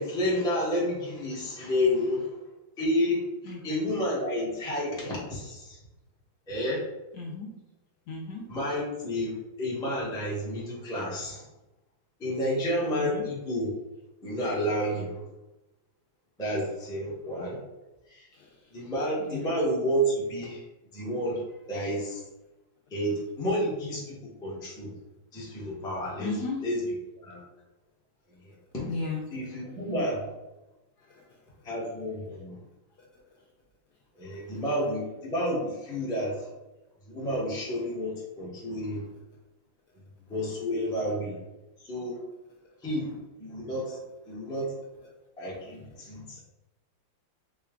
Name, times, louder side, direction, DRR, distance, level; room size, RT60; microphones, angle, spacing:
voice 1, 0.0-2.3 2.8-3.2 3.6-5.8 6.5-6.8 8.5-11.4 12.2-13.7 14.2-15.2 16.4-17.6 18.1-18.3 18.7-20.6 20.9-21.4 21.7-22.2 22.9-24.9 25.3-26.4 26.6-26.8 27.2-27.4 28.7-28.9 29.3-30.3 31.6-32.6 34.2-36.4 37.1-39.0 40.3-41.4 41.9-42.2 42.8-44.0 44.3-44.7 45.4-46.4, equal, 5° left, -6 dB, 0.5 m, -30 dB
voice 2, 3.4-3.8 7.1-7.5 8.1-8.5 12.9-13.3 18.3-18.5 19.2-19.5 26.2-26.6 28.9-29.2 31.1-31.2, left 3 dB, 70° left, -1 dB, 1.0 m, -35 dB
4.3 x 2.3 x 3.6 m, 1.0 s
omnidirectional pair, 2.2 m